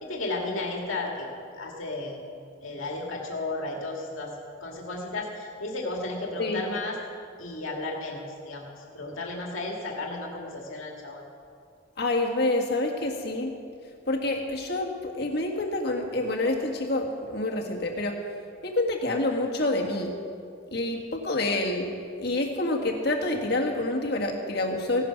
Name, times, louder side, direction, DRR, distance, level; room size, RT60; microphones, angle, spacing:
voice 1, 0.0-1.3 1.5-2.2 2.6-4.3 4.6-7.0 7.4-11.2, left 2 dB, 80° left, -1 dB, 2.1 m, -33 dB
voice 2, 12.0-13.5 14.1-18.2 18.6-20.1 20.7-21.9 22.2-25.0, left 2 dB, 50° left, 1 dB, 1.7 m, -27 dB
16.5 x 11.5 x 5.9 m, 2.3 s
head